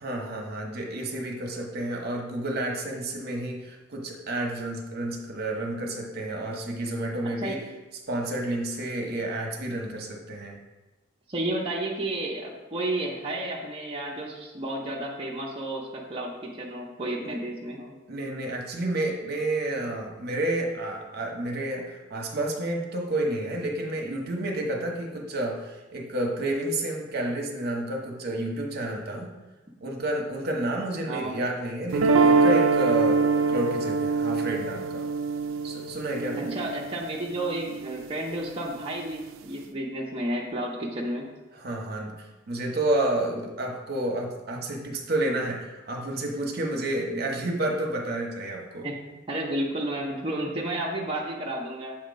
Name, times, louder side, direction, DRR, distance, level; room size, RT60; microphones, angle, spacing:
voice 1, 0.0-7.6 8.1-10.6 17.2-17.3 18.1-29.3 29.8-35.0 35.6-36.6 41.6-42.1 42.5-48.9, right 1 dB, 55° right, 0 dB, 0.9 m, -30 dB
voice 2, 11.3-17.9 31.0-31.4 36.4-41.3 48.8-52.0, right 1 dB, 30° right, -4 dB, 0.7 m, -32 dB
sound 1, 31.9-38.0, right 4 dB, 90° right, 0.4 m, -24 dB
7.3 x 2.9 x 5.1 m, 1.1 s
head